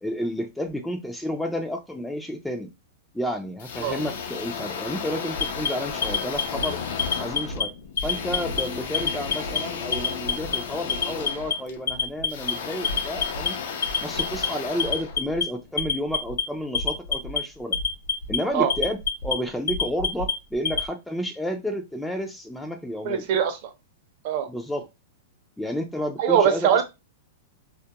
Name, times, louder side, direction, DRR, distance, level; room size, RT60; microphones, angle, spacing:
voice 1, 0.0-2.7 3.1-6.8 7.2-7.7 8.0-13.6 14.0-17.8 18.3-23.3 24.5-24.9 25.6-26.8, equal, 5° left, 4 dB, 0.3 m, -31 dB
sound 1, 3.6-15.8, left 6 dB, 65° left, 0.5 m, -34 dB
Alarm, 5.4-6.7 7.0-7.6 8.0-8.6 8.9-9.6 9.9-10.6 10.9-11.5 11.9-12.5 12.8-13.5 13.8-14.5 14.8-15.4 15.8-16.4 16.7-17.4 17.7-18.4 18.7-19.3 19.7-20.9, left 5 dB, 85° left, 0.8 m, -26 dB
voice 2, 23.0-23.6 24.2-24.5 26.2-26.8, right 8 dB, 50° right, 7 dB, 0.5 m, -21 dB
2.3 x 2.1 x 2.8 m, 0.24 s
hypercardioid pair, 140°, 0 cm